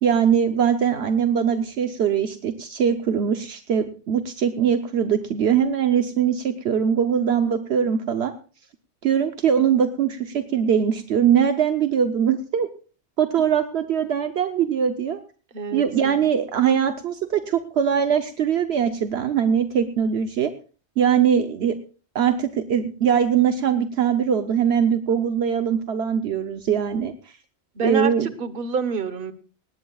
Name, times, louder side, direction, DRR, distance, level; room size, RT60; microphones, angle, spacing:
voice 1, 0.0-8.3 9.0-12.7 13.2-15.2 15.7-20.5 21.0-21.7 22.1-27.1 27.8-28.3, right 8 dB, 70° right, 8 dB, 1.1 m, -21 dB
voice 2, 15.5-16.3 27.7-29.3, right 5 dB, 55° right, 11 dB, 1.3 m, -28 dB
18.5 x 17.5 x 2.4 m, 0.38 s
omnidirectional pair, 1.1 m